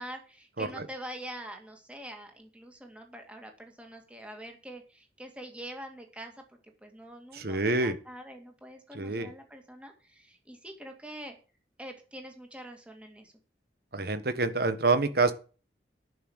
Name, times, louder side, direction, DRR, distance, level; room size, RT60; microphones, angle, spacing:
voice 1, 0.0-6.3 6.6-11.4 11.8-13.3, right 1 dB, 5° right, 3 dB, 2.3 m, -45 dB
voice 2, 7.3-7.9 8.9-9.3 13.9-15.3, right 3 dB, 55° right, 10 dB, 1.4 m, -26 dB
11.0 x 6.3 x 8.1 m, 0.36 s
head